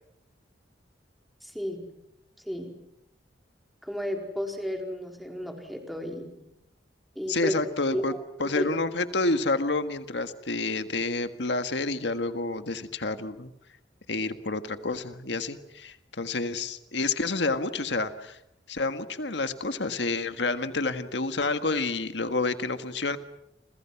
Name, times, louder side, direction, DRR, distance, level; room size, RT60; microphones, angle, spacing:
voice 1, 1.4-1.8 2.4-2.7 3.8-6.4 7.1-7.6 7.9-8.2 8.5-8.8, equal, ahead, 3 dB, 4.4 m, -33 dB
voice 2, 7.3-8.1 8.4-13.5 14.1-18.4 18.7-23.2, left 3 dB, 75° left, 9 dB, 1.7 m, -29 dB
30.0 x 27.0 x 6.0 m, 0.80 s
head